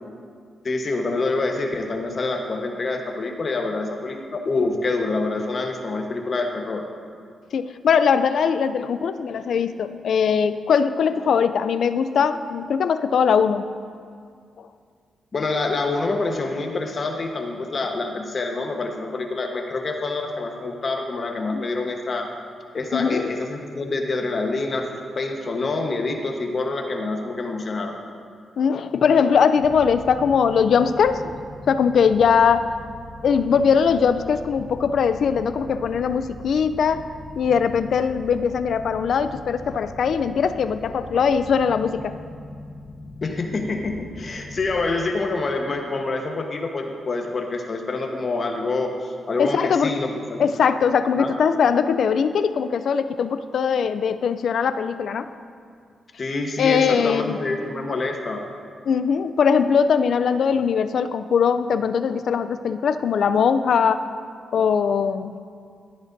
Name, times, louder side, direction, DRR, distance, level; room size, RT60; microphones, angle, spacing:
voice 1, 0.6-6.8 15.3-22.3 22.7-27.9 43.2-50.4 51.2-51.3 56.2-58.4, left 3 dB, 45° left, 3 dB, 1.2 m, -26 dB
voice 2, 7.5-13.6 14.6-14.7 21.5-21.6 22.9-23.3 28.6-31.3 31.7-32.7 33.2-37.1 37.4-42.1 49.4-49.9 50.4-55.3 56.6-57.4 58.9-64.0 64.5-65.4, left 6 dB, 70° left, 12 dB, 0.4 m, -21 dB
sound 1, 29.6-44.9, left 2 dB, 25° left, 1.2 m, -40 dB
12.5 x 10.0 x 2.7 m, 2.2 s
cardioid pair, 75°, 0 cm